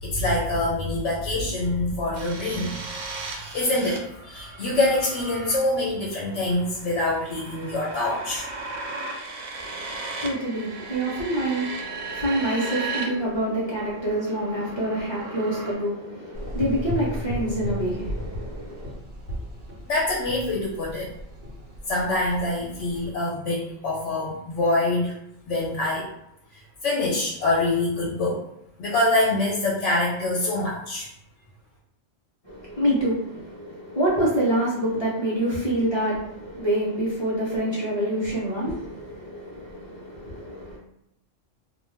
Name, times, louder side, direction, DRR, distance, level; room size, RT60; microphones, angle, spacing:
voice 1, 0.0-2.8 3.2-8.5 19.9-21.1 21.9-25.1 25.5-26.1 26.5-28.4 28.8-31.1, left 2 dB, 75° left, 1.0 m, -25 dB
sound 1, 2.1-13.0 13.3-15.7, right 3 dB, 90° right, 1.0 m, -37 dB
voice 2, 9.6-18.9 32.4-40.8, right 1 dB, 30° left, 0.5 m, -27 dB
Gurgling / Engine, 16.3-23.1, left 1 dB, 60° right, 1.1 m, -35 dB
2.4 x 2.3 x 3.2 m
omnidirectional pair, 1.3 m